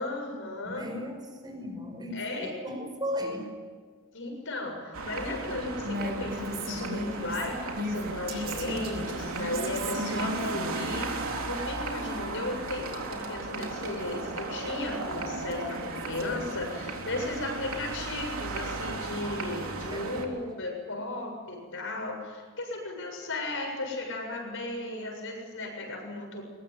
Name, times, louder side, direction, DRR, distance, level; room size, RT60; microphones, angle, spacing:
voice 1, 0.0-0.9 2.1-2.6 4.1-26.4, left 2 dB, 60° left, 2 dB, 7.5 m, -35 dB
voice 2, 0.6-3.5 10.1-10.3 19.9-20.3, left 1 dB, 20° right, 4 dB, 5.6 m, -36 dB
sound 1, 4.9-20.2, right 3 dB, 70° right, 3.7 m, -36 dB
Female speech woman speaking, 5.8-11.0, equal, 50° right, 5.3 m, -36 dB
23.0 x 21.5 x 9.6 m, 1.5 s
head